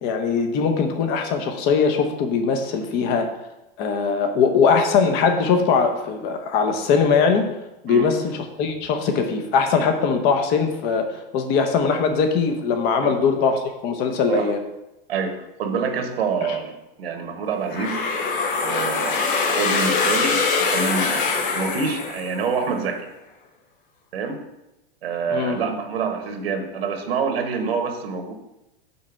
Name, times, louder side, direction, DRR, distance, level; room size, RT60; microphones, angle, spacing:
voice 1, 0.0-3.3 3.8-7.5 7.8-14.6 16.5-16.6 25.3-25.6, left 5 dB, 35° left, 6 dB, 0.9 m, -21 dB
voice 2, 15.1-18.1 18.6-23.1 24.1-24.4 25.0-28.3, right 5 dB, 85° right, 5 dB, 1.3 m, -27 dB
sound 1, 17.7-22.6, left 4 dB, 60° left, 1.2 m, -23 dB
5.7 x 4.3 x 5.8 m, 0.94 s
supercardioid pair, 150°, 29 cm